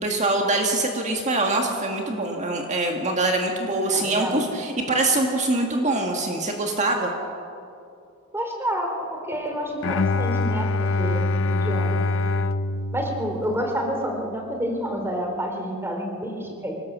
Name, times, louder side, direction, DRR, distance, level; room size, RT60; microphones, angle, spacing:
voice 1, 0.0-7.1, right 2 dB, 30° right, 2 dB, 1.8 m, -24 dB
voice 2, 3.9-4.5 8.3-12.0 12.9-16.8, equal, 10° right, 2 dB, 3.1 m, -29 dB
Bowed string instrument, 9.8-14.0, left 3 dB, 60° left, 0.7 m, -24 dB
25.0 x 18.5 x 7.4 m, 2.6 s
head